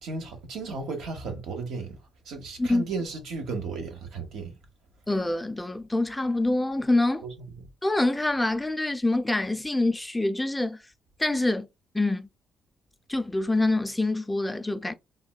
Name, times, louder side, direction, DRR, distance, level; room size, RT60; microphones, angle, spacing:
voice 1, 0.0-2.0 2.2-4.5 7.2-7.7, right 4 dB, 85° right, 1.0 m, -35 dB
voice 2, 5.1-7.2 7.8-10.8 11.2-11.7 11.9-12.3 13.1-14.9, left 2 dB, 10° left, 0.4 m, -25 dB
3.5 x 2.2 x 2.2 m
cardioid pair, 115°, 0 cm